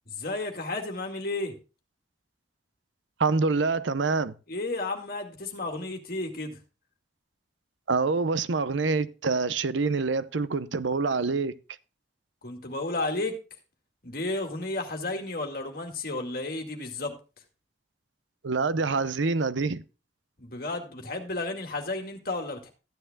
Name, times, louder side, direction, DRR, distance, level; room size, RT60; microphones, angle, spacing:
voice 1, 0.1-1.6 4.5-6.6 12.4-13.4 14.0-17.1 20.4-22.7, left 2 dB, 50° left, 2.2 m, -32 dB
voice 2, 3.2-4.3 7.9-11.6 18.4-19.8, right 4 dB, 85° right, 0.7 m, -26 dB
14.5 x 10.0 x 2.3 m
head